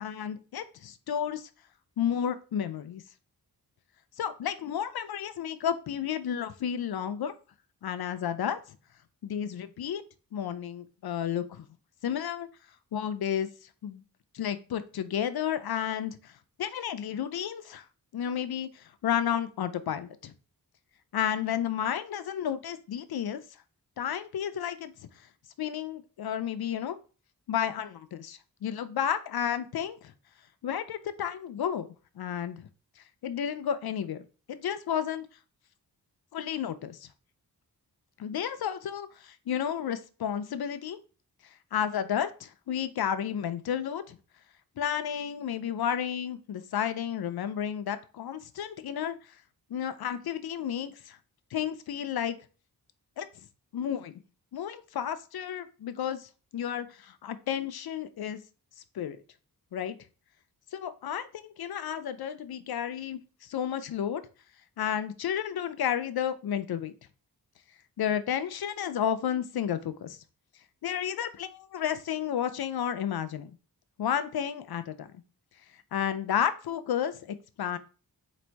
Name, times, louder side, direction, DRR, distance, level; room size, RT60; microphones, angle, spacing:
voice 1, 0.0-1.5 2.0-3.0 4.2-7.3 7.8-8.6 9.2-10.0 10.3-11.7 12.0-12.5 12.9-13.5 13.8-14.0 14.3-16.3 16.6-17.8 18.1-20.3 21.1-23.4 24.0-24.9 25.6-27.0 27.5-30.1 30.6-31.9 32.2-32.7 33.0-35.3 36.3-37.1 38.2-41.0 41.7-44.2 44.8-49.2 49.7-51.2 51.5-52.4 53.2-53.3 53.7-54.1 54.5-58.4 58.9-59.2 59.7-60.0 60.7-64.2 64.8-66.9 68.0-70.2 70.8-73.5 74.0-75.1 75.9-77.8, left 9 dB, 70° left, 12 dB, 0.5 m, -32 dB
4.1 x 2.6 x 4.5 m, 0.35 s
wide cardioid pair, 115°, 39 cm